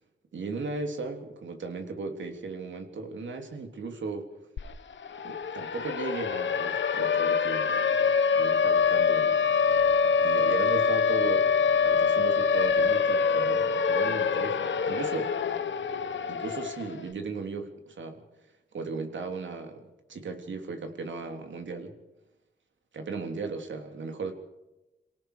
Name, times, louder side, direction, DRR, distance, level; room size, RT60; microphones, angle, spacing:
voice 1, 0.3-4.3 5.2-9.4 10.2-11.6 11.8-15.4 16.3-18.2 18.7-21.9 22.9-24.3, right 4 dB, 80° right, 5 dB, 3.4 m, -36 dB
Siren, 4.6-4.7 5.0-17.0, left 6 dB, 80° left, 1.3 m, -25 dB
28.5 x 18.0 x 5.1 m, 0.99 s
wide cardioid pair, 80°, 19 cm